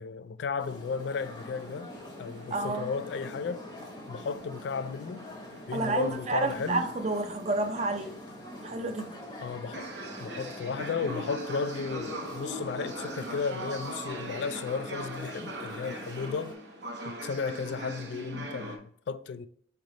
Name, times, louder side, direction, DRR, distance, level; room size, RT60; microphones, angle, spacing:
voice 1, 0.0-1.9 2.2-3.7 4.1-5.3 5.7-6.9 9.4-9.9 10.2-16.6 17.0-19.5, left 5 dB, 70° left, 0.3 m, -34 dB
sound 1, 0.6-16.6, left 1 dB, 25° left, 0.8 m, -45 dB
sound 2, 1.2-18.8, right 1 dB, 80° right, 1.0 m, -42 dB
voice 2, 2.5-2.9 5.7-8.2 8.6-9.1, right 2 dB, 40° right, 0.6 m, -30 dB
4.0 x 3.3 x 3.7 m
head